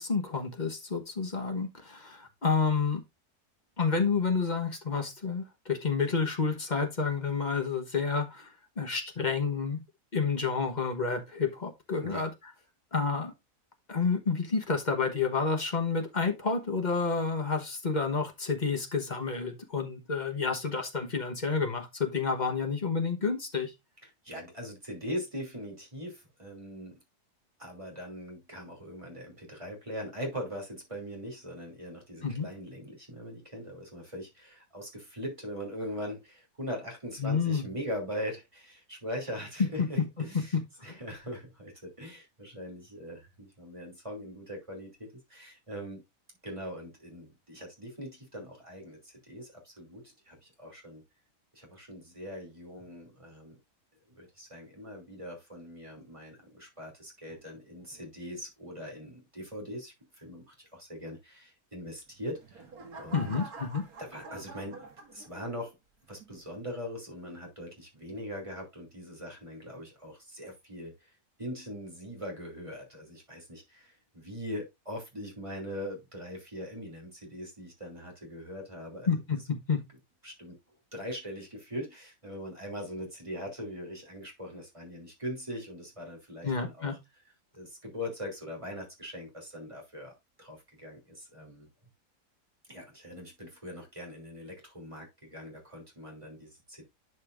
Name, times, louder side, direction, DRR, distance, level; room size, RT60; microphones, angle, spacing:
voice 1, 0.0-3.0 3.8-9.8 10.1-12.3 12.9-13.3 13.9-23.7 32.2-32.5 37.2-37.7 39.6-39.9 40.5-40.9 63.1-63.8 79.1-79.8 86.4-86.9, left 5 dB, 30° left, 1.2 m, -29 dB
voice 2, 24.0-27.0 27.6-40.6 40.8-44.9 45.3-46.0 46.4-51.0 51.5-53.6 54.1-62.6 63.0-63.4 64.0-65.7 66.1-79.1 80.2-80.6 80.9-87.0 87.5-91.7 92.7-96.8, equal, 20° right, 3.0 m, -41 dB
sound 1, 62.1-65.6 66.2-66.5, right 3 dB, 70° right, 2.4 m, -46 dB
11.0 x 5.4 x 2.5 m
omnidirectional pair, 1.6 m